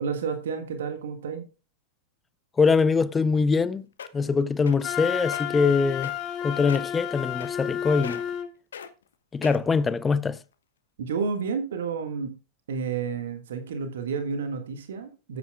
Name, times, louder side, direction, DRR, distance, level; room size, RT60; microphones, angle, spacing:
voice 1, 0.0-1.4 11.0-12.3 12.7-15.4, right 5 dB, 60° right, 1.7 m, -30 dB
voice 2, 2.6-3.8 4.1-6.1 6.4-8.2 9.3-10.4, left 5 dB, 15° left, 0.5 m, -23 dB
sound 1, 3.7-3.8 4.0-4.3 4.7-4.9 5.2-5.4 6.0-6.4 6.7-6.9 7.4-7.8 8.0-8.4 8.7-8.9 9.4-9.8 10.4-10.5, left 7 dB, 65° left, 1.1 m, -39 dB
Wind instrument woodwind instrument, 4.8-8.5, left 10 dB, 35° left, 1.5 m, -31 dB
14.0 x 9.2 x 2.3 m
figure-of-eight pair, 95°, 0 cm